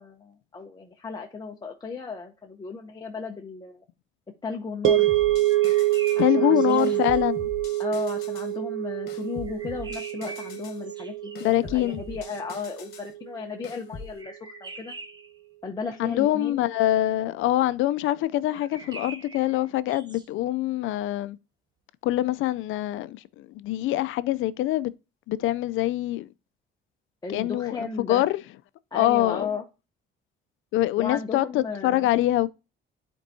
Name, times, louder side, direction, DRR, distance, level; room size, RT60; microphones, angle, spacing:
voice 1, 0.0-3.8 4.4-5.1 6.2-7.0 7.8-14.9 15.6-16.7 27.2-28.3 28.9-29.6 31.0-32.1, left 4 dB, 20° left, 0.8 m, -35 dB
sound 1, 4.8-13.1, right 15 dB, 85° right, 0.9 m, -26 dB
sound 2, 5.1-6.3 6.8-8.5 9.1-10.8 11.3-13.1 13.6-14.1, left 5 dB, 50° left, 1.4 m, -42 dB
sound 3, 5.5-7.2 9.4-12.1 14.2-15.4 18.5-20.3, right 3 dB, 20° right, 1.2 m, -44 dB
voice 2, 6.2-7.5 11.4-12.0 16.0-21.4 22.0-24.9 25.3-26.3 27.3-28.4 28.9-29.5 30.7-32.5, left 15 dB, 75° left, 0.5 m, -24 dB
11.0 x 4.5 x 2.7 m
cardioid pair, 135°, 21 cm